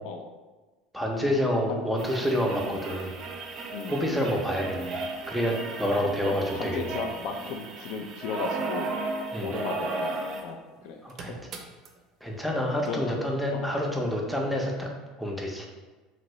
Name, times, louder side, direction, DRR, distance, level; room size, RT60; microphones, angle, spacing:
voice 1, 0.9-3.2 3.9-7.0 9.3-9.5 11.0-11.3 12.2-14.9 15.2-15.7, equal, ahead, -1 dB, 0.6 m, -28 dB
sound 1, 2.0-10.5 10.8-10.9 11.1-11.9 12.9-13.0, right 3 dB, 45° right, 0.5 m, -35 dB
voice 2, 3.7-4.1 6.0-8.9 9.4-11.0 11.3-11.4 12.9-13.1 13.5-13.7, left 5 dB, 65° left, 4 dB, 0.4 m, -35 dB
2.8 x 2.6 x 3.0 m, 1.3 s
supercardioid pair, 105°, 0 cm